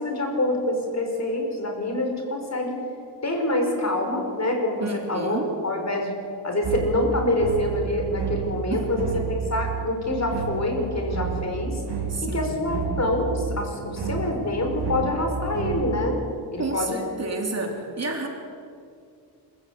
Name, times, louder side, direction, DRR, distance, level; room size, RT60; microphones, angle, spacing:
voice 1, 0.0-2.8 3.2-5.4 5.6-6.2 6.4-11.8 12.2-16.2 16.5-17.0, left 1 dB, 40° left, 3 dB, 5.1 m, -26 dB
voice 2, 4.8-5.5 8.7-9.3 12.1-12.8 16.6-18.3, right 2 dB, 35° right, 1 dB, 3.8 m, -31 dB
sound 1, 6.6-16.1, right 5 dB, 75° right, 4.1 m, -31 dB
26.5 x 15.5 x 8.6 m, 2.4 s
cardioid pair, 90°, 42 cm